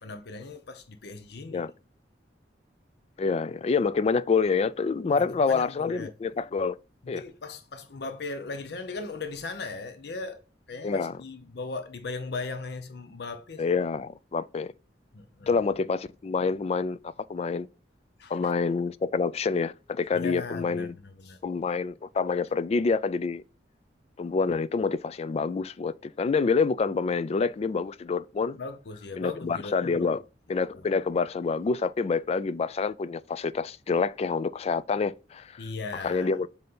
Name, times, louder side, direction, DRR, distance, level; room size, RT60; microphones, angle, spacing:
voice 1, 0.0-1.6 5.0-6.1 7.0-13.7 15.1-15.6 18.2-18.5 20.1-21.4 28.5-30.1 35.6-36.4, left 3 dB, 65° left, 0.7 m, -38 dB
voice 2, 3.2-6.8 7.1-7.2 10.8-11.2 13.6-14.7 15.5-17.7 18.3-21.0 21.4-23.4 24.2-28.6 29.2-30.2 30.5-35.6 36.0-36.5, left 4 dB, 35° left, 0.3 m, -27 dB
7.7 x 2.7 x 5.4 m
head